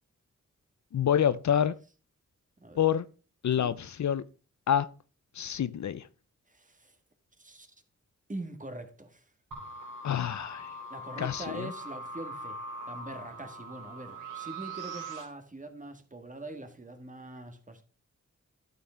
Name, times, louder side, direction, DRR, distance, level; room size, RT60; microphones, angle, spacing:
voice 1, 0.9-1.7 2.8-3.1 3.4-4.2 4.7-4.9 5.3-6.1 10.0-10.7 11.2-11.7, left 9 dB, 65° left, 0.5 m, -27 dB
voice 2, 6.5-7.0 7.4-7.8 8.3-9.3 10.9-12.6 12.9-17.8, right 2 dB, 25° right, 1.7 m, -43 dB
sound 1, 9.5-15.2, right 1 dB, 90° right, 3.2 m, -41 dB
11.5 x 6.1 x 4.4 m
wide cardioid pair, 80°, 31 cm